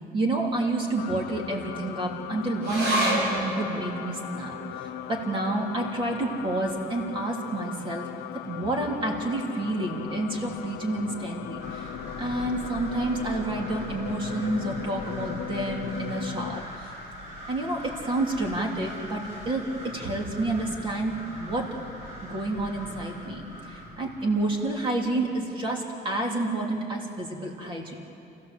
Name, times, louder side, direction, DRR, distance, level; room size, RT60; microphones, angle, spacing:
voice 1, 0.1-8.1 8.5-11.9 12.2-16.9 17.5-21.7 22.2-23.4 23.7-27.9, right 2 dB, 30° right, 0 dB, 3.0 m, -29 dB
sound 1, 1.0-16.6, left 13 dB, 70° left, 0.6 m, -38 dB
sound 2, 2.6-9.4 9.7-9.8 10.1-10.8 11.4-11.5, right 1 dB, 85° right, 6.8 m, -33 dB
sound 3, 11.6-25.2, equal, 50° right, 6.7 m, -41 dB
29.0 x 16.0 x 7.7 m, 2.9 s
cardioid pair, 170°, 18 cm